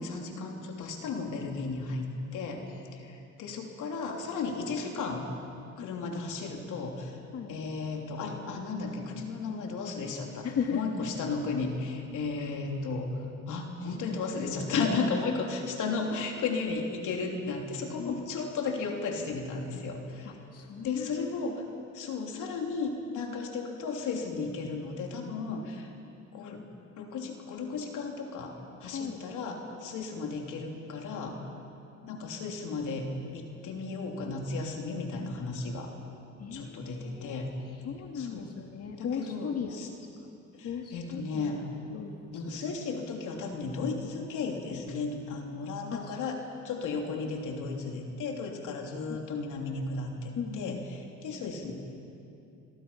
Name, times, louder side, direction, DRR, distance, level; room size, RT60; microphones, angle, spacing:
voice 1, 0.0-5.3 5.8-7.2 7.5-13.1 13.5-20.3 20.8-21.6 21.9-25.9 26.3-26.7 27.0-28.5 28.8-31.4 32.1-33.1 33.3-35.9 36.5-37.5 38.1-38.5 39.0-39.9 40.6-41.6 42.3-46.4 46.6-51.7, left 4 dB, 80° left, 1 dB, 3.2 m, -34 dB
voice 2, 10.4-10.8 14.7-14.9 18.0-18.4 20.3-21.5 28.9-29.2 36.4-37.5 37.8-39.8 40.6-42.4 45.9-46.2 49.1-49.2 50.4-50.8, left 7 dB, 55° left, 2 dB, 1.9 m, -36 dB
28.0 x 22.5 x 5.7 m, 2.7 s
cardioid pair, 90°, 30 cm